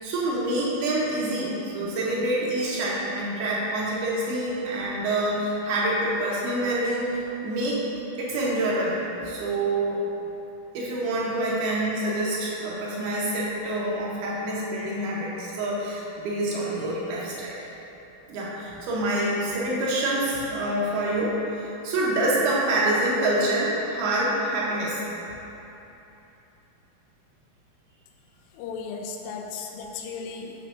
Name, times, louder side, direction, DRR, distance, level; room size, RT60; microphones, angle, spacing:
voice 1, 0.0-7.8 8.2-9.0 9.2-10.0 10.7-17.6 18.3-25.0, right 1 dB, 85° right, -6 dB, 1.8 m, -26 dB
voice 2, 28.5-30.5, left 5 dB, 85° left, 2 dB, 2.1 m, -35 dB
6.1 x 3.4 x 5.9 m, 3.0 s
omnidirectional pair, 4.7 m